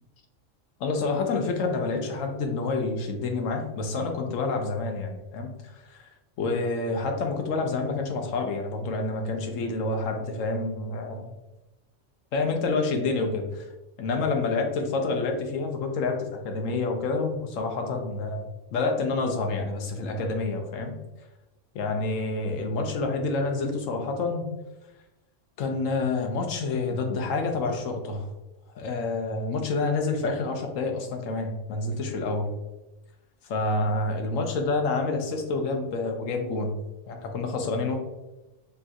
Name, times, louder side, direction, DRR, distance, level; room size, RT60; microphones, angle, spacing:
voice 1, 0.8-5.5 5.9-6.1 6.4-11.3 12.3-13.7 14.0-20.9 21.7-24.4 25.6-28.3 28.7-32.5 33.4-36.7 37.1-38.0, left 3 dB, 85° left, 4 dB, 1.1 m, -28 dB
5.2 x 2.4 x 2.8 m, 1.0 s
omnidirectional pair, 1.3 m